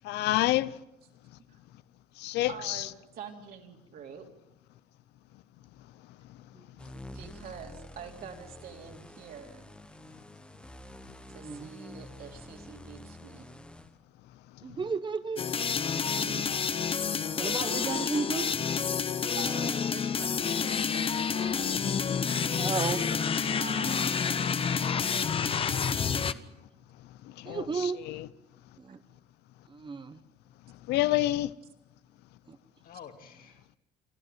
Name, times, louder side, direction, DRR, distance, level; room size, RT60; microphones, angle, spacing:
voice 1, 0.0-0.7 2.2-2.9 27.4-28.3 30.9-31.5, left 16 dB, 85° left, 0.7 m, -28 dB
voice 2, 2.5-4.2 7.1-9.7 11.3-13.5 19.4-21.8 22.8-23.2 23.5-24.8 25.1-26.4 28.9-29.0, right 7 dB, 60° right, 3.5 m, -46 dB
sound 1, 6.8-13.9, left 1 dB, 5° left, 1.2 m, -48 dB
voice 3, 11.4-11.7 14.6-15.4 16.2-16.4 17.3-18.5 22.6-23.1 27.4-28.0 28.8-29.0 29.7-30.2 32.5-32.6, right 5 dB, 30° right, 1.1 m, -33 dB
sound 2, 15.4-26.3, left 6 dB, 35° left, 0.9 m, -29 dB
voice 4, 20.6-22.3 32.8-33.6, left 7 dB, 60° left, 2.6 m, -51 dB
27.5 x 12.5 x 9.3 m
cardioid pair, 110°, 17 cm